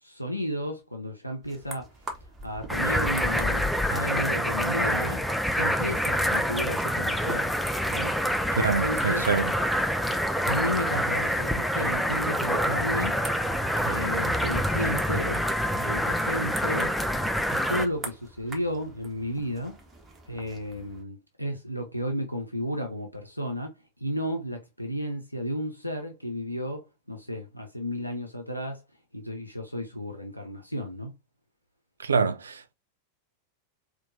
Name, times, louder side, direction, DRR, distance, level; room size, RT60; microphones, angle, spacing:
voice 1, 0.0-1.9 2.4-5.2 5.5-7.5 7.9-9.3 10.4-13.2 13.8-15.4 15.7-17.0 17.5-19.8 20.3-28.8 29.1-31.1, equal, 90° left, 0.6 m, -33 dB
sound 1, 1.4-21.0, right 3 dB, 20° right, 0.9 m, -45 dB
sound 2, 2.7-17.9, equal, ahead, 0.4 m, -26 dB
voice 2, 8.5-9.5 32.0-32.7, right 5 dB, 75° right, 0.3 m, -26 dB
4.4 x 2.2 x 2.5 m
figure-of-eight pair, 90°, 0 cm